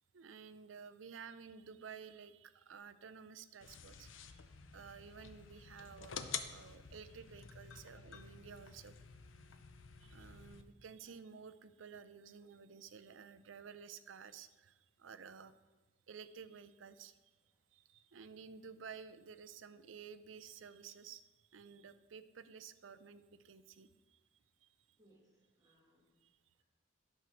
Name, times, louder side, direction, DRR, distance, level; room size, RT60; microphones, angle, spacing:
voice 1, 0.1-4.4 4.7-8.9 10.0-15.5 16.1-17.2 17.7-24.2 24.6-24.7 25.6-25.7 26.2-26.4, right 6 dB, 85° right, 12 dB, 0.5 m, -53 dB
sound 1, 3.6-10.6, left 7 dB, 85° left, 0.6 m, -49 dB
voice 2, 25.0-26.2 26.5-26.6, right 1 dB, 20° right, -4 dB, 2.2 m, -70 dB
11.5 x 4.6 x 6.2 m, 1.2 s
head